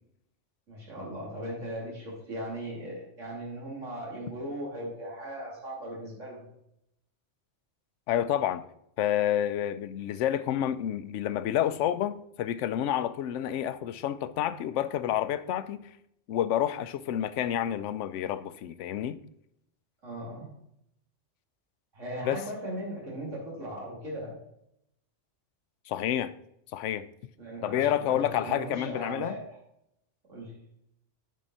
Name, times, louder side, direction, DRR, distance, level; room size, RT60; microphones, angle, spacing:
voice 1, 0.7-6.5 20.0-20.5 21.9-24.3 27.4-29.4 30.3-30.5, right 1 dB, 85° right, 3.5 m, -38 dB
voice 2, 8.1-8.6 9.0-15.9 16.3-19.2 22.2-22.4 25.9-26.3 26.7-27.1 27.6-29.4, left 11 dB, 80° left, 0.9 m, -29 dB
9.3 x 5.6 x 4.1 m
omnidirectional pair, 1.3 m